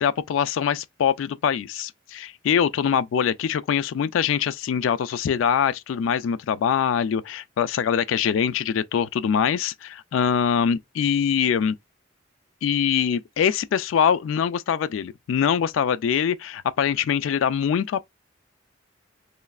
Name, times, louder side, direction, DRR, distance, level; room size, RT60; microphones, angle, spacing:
voice 1, 0.0-11.8 12.6-18.0, left 8 dB, 85° left, 0.3 m, -23 dB
3.1 x 2.3 x 2.3 m
head